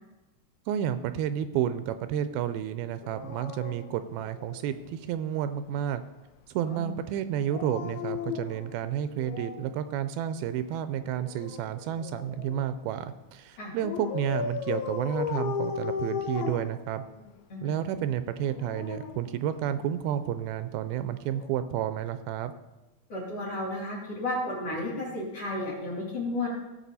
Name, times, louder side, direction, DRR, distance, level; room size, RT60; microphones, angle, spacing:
voice 1, 0.7-6.0 6.5-17.0 17.6-22.5, right 10 dB, 85° right, 11 dB, 2.4 m, -31 dB
Dog, 3.0-4.9 7.3-9.7 11.0-12.7 13.8-17.4 18.3-20.0 21.3-21.5, left 7 dB, 90° left, 2.8 m, -36 dB
voice 2, 23.1-26.5, left 2 dB, 40° left, -5 dB, 3.5 m, -33 dB
17.0 x 6.9 x 4.1 m, 1.1 s
omnidirectional pair, 4.4 m